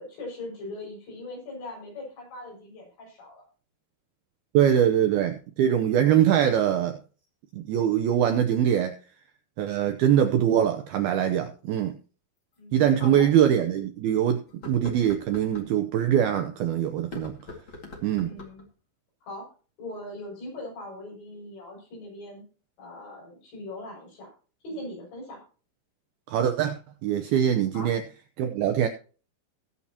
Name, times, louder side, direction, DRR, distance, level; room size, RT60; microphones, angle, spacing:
voice 1, 0.0-3.4 12.6-13.3 18.2-18.7 19.2-19.4 19.8-22.4 22.8-24.3 24.6-25.4 27.7-27.9, left 1 dB, 70° left, 8.7 m, -40 dB
voice 2, 4.5-7.0 7.5-8.9 9.6-12.0 12.7-17.3 18.0-18.3 26.3-28.0 28.4-28.9, right 10 dB, 85° right, 2.2 m, -23 dB
sound 1, 12.5-12.6 13.2-13.3 14.5-15.7 17.0-18.7, left 3 dB, 40° left, 1.9 m, -42 dB
20.0 x 7.3 x 2.9 m
omnidirectional pair, 5.4 m